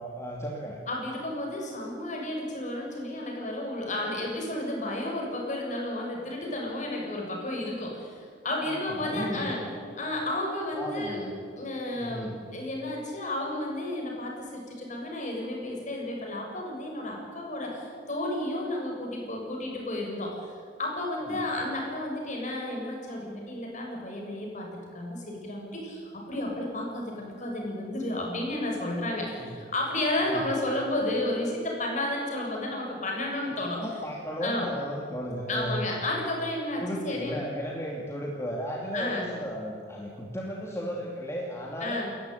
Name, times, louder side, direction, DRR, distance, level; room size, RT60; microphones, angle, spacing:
voice 1, 0.0-0.8 8.7-9.5 10.7-11.3 12.0-12.3 21.3-21.4 29.4-29.6 30.3-30.4 33.8-35.8 36.8-42.0, equal, 15° left, -2 dB, 2.7 m, -35 dB
voice 2, 0.9-9.6 10.0-11.3 11.6-20.5 20.8-33.9 34.4-34.7 35.5-37.4 38.9-39.3 41.8-42.1, left 1 dB, 40° left, -1 dB, 7.0 m, -32 dB
29.0 x 14.0 x 9.4 m, 2.2 s
head